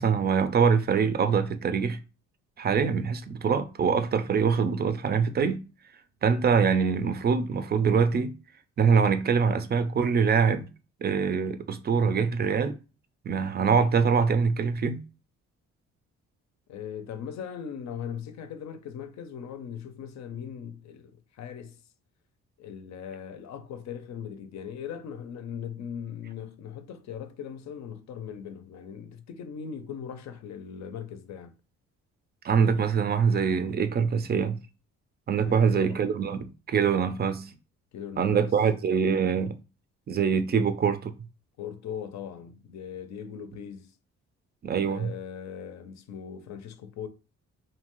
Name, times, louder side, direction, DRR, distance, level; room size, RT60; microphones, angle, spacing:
voice 1, 0.0-2.0 2.6-5.6 6.2-8.3 8.8-10.7 11.0-12.8 13.3-15.0 32.4-34.6 35.3-37.5 38.2-39.5 40.1-41.0 44.6-45.1, right 6 dB, 35° right, 0.4 m, -24 dB
voice 2, 16.7-21.8 22.6-31.6 35.4-36.0 37.9-38.5 40.6-40.7 41.6-43.9 44.9-47.1, left 8 dB, 65° left, 0.6 m, -39 dB
2.6 x 2.2 x 3.0 m
cardioid pair, 90°, 30 cm